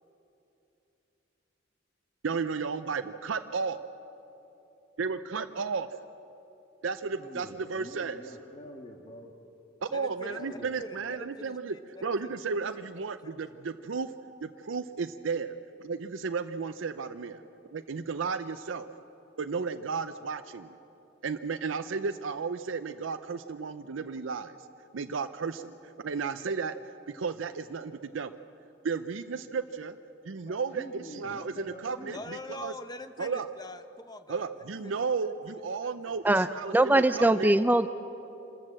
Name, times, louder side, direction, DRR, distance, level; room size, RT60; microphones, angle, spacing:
voice 1, 2.2-3.8 5.0-5.9 6.8-8.2 9.8-11.7 12.0-14.1 14.4-15.6 15.8-17.4 17.7-18.9 19.4-20.8 21.2-24.6 24.9-28.3 28.8-30.0 30.2-32.7 33.2-33.5 34.3-37.5, right 5 dB, 85° right, 10 dB, 0.6 m, -33 dB
voice 2, 7.0-9.3 10.3-10.8 30.4-32.3, left 1 dB, 35° left, 0 dB, 1.6 m, -46 dB
voice 3, 9.9-12.4 12.7-13.1 32.1-35.0 35.8-35.9, left 2 dB, 20° left, 10 dB, 0.8 m, -44 dB
voice 4, 36.7-37.9, right 1 dB, 10° right, 11 dB, 0.4 m, -21 dB
27.0 x 14.0 x 7.6 m, 2.9 s
head